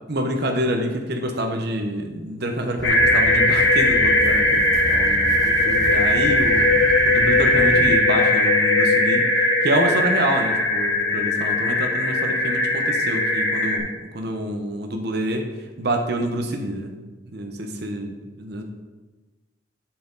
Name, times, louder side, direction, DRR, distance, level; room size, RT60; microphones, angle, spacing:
voice 1, 0.1-6.7 7.1-9.2 9.6-13.9 14.1-15.5 15.8-16.9 17.3-18.6, right 1 dB, 65° right, 3 dB, 1.1 m, -27 dB
sound 1, 2.8-13.8, left 1 dB, 85° left, 2.1 m, -19 dB
sound 2, 2.8-7.9, right 1 dB, 20° right, 0.6 m, -33 dB
8.4 x 7.7 x 4.1 m, 1.3 s
head